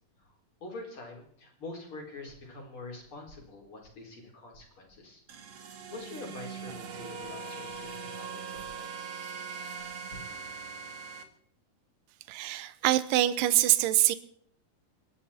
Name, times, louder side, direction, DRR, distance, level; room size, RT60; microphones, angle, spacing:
voice 1, 0.2-5.2 5.5-9.1, left 2 dB, 40° left, 1 dB, 4.6 m, -45 dB
sound 1, 5.3-11.2, right 5 dB, 55° right, 2.7 m, -41 dB
voice 2, 12.3-14.2, right 14 dB, 80° right, 14 dB, 2.4 m, -24 dB
28.0 x 11.5 x 4.3 m, 0.67 s
omnidirectional pair, 3.9 m